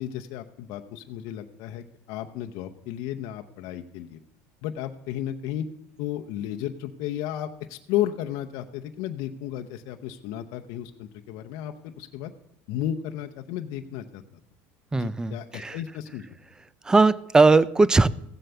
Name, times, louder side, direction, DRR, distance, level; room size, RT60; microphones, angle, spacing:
voice 1, 0.0-4.2 4.6-5.7 6.0-12.3 12.7-14.2 14.9-16.3, left 11 dB, 65° left, 6 dB, 0.8 m, -33 dB
voice 2, 14.9-15.8 16.8-18.1, right 3 dB, 10° right, 19 dB, 0.4 m, -19 dB
15.5 x 7.8 x 6.9 m, 0.82 s
cardioid pair, 130°, 6 cm